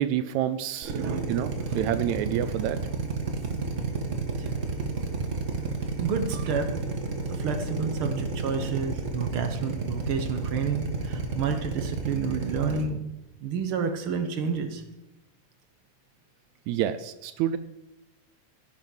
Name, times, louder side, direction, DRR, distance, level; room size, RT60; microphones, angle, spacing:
voice 1, 0.0-1.0 1.3-2.9 16.7-17.6, right 11 dB, 80° right, 12 dB, 1.9 m, -28 dB
Drill, 0.8-12.8, right 4 dB, 45° right, 1.0 m, -31 dB
voice 2, 0.9-1.3 4.4-4.5 6.0-6.7 7.3-13.0 13.4-14.8, right 6 dB, 65° right, 7 dB, 1.4 m, -30 dB
15.5 x 7.6 x 5.6 m, 0.94 s
omnidirectional pair, 3.4 m